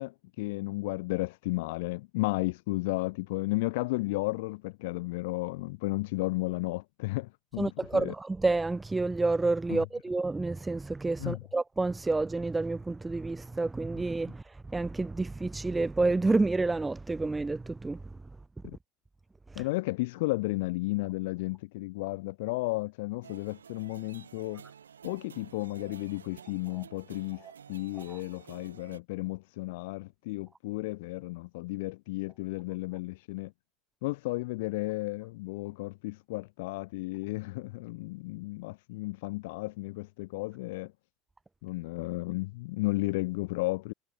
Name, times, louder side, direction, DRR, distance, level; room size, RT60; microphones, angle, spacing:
voice 1, 0.0-8.1 9.7-9.8 11.2-11.4 18.6-18.8 19.6-24.6 25.0-33.5 34.0-40.9 41.6-43.9, left 22 dB, 70° left, 0.3 m, -33 dB
voice 2, 7.6-18.0, right 3 dB, 15° right, 0.3 m, -29 dB
sound 1, 23.2-29.0, right 7 dB, 90° right, 5.6 m, -51 dB
hypercardioid pair, 80°, 0 cm